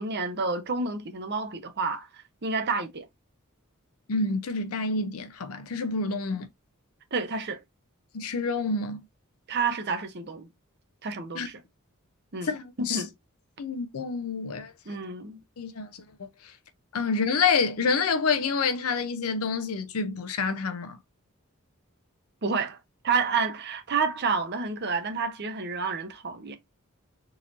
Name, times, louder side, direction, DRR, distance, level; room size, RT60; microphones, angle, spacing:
voice 1, 0.0-3.1 6.3-6.4 7.1-7.6 9.5-10.5 11.0-11.6 12.3-13.1 14.9-15.4 22.4-22.8 23.0-26.6, right 4 dB, 50° right, 0.8 m, -29 dB
voice 2, 4.1-6.5 8.1-9.0 11.3-11.5 12.4-13.0 13.6-14.7 15.6-15.9 16.2-16.5 16.9-21.0, left 4 dB, 85° left, 0.6 m, -28 dB
3.9 x 2.9 x 2.5 m
head